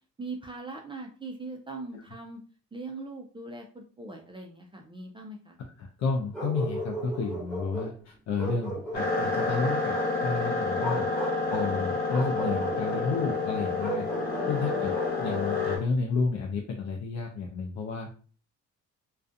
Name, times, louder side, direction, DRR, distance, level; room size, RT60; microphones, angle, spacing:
voice 1, 0.2-2.4 2.7-5.6 14.3-15.0, right 3 dB, 15° right, 1 dB, 0.4 m, -41 dB
voice 2, 5.8-14.1 14.5-18.2, left 4 dB, 60° left, 0 dB, 0.5 m, -31 dB
Bark, 6.3-8.0 8.4-10.1 10.8-11.7 12.1-13.0 13.8-15.5, right 2 dB, ahead, 1.2 m, -35 dB
sound 1, 8.9-15.8, left 3 dB, 30° left, 1.2 m, -29 dB
2.4 x 2.3 x 2.5 m, 0.40 s
cardioid pair, 90°, 30 cm